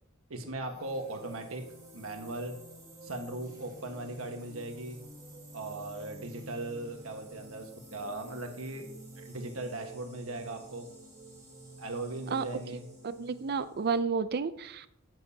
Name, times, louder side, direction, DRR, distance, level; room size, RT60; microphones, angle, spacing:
voice 1, 0.3-1.6 1.9-2.6 3.0-5.0 5.5-8.9 9.2-10.9 11.8-12.8, right 2 dB, 70° right, 4 dB, 1.5 m, -38 dB
sound 1, 0.6-14.0, right 1 dB, 15° right, 4.3 m, -50 dB
voice 2, 13.0-14.9, right 5 dB, 50° right, 14 dB, 0.5 m, -31 dB
13.0 x 7.8 x 2.9 m, 0.75 s
head